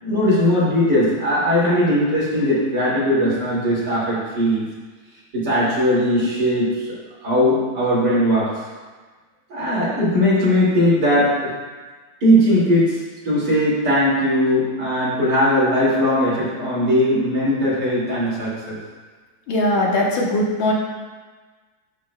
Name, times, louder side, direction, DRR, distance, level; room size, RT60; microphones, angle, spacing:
voice 1, 0.0-4.6 5.3-8.5 9.5-11.3 12.2-13.0 13.2-18.8, equal, 55° right, -7 dB, 2.9 m, -19 dB
voice 2, 19.5-20.7, left 1 dB, 75° left, -2 dB, 1.9 m, -20 dB
12.0 x 6.4 x 2.2 m, 1.4 s
omnidirectional pair, 2.2 m